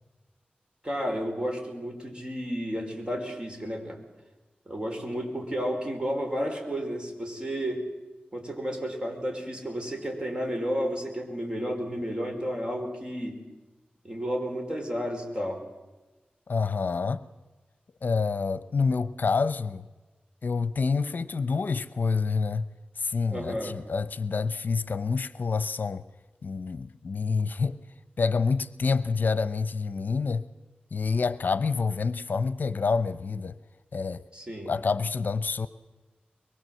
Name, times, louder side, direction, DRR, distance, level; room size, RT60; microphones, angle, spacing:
voice 1, 0.8-4.0 4.6-7.9 8.3-13.4 14.0-15.6 23.3-23.8 34.3-34.7, equal, 25° right, 5.0 m, -32 dB
voice 2, 16.5-17.2 18.0-19.9 20.4-22.7 23.0-26.0 26.4-27.8 28.2-30.5 30.9-33.6 33.9-34.2 34.7-35.7, left 4 dB, 65° left, 0.8 m, -27 dB
23.5 x 22.5 x 7.8 m
wide cardioid pair, 90°, 3 cm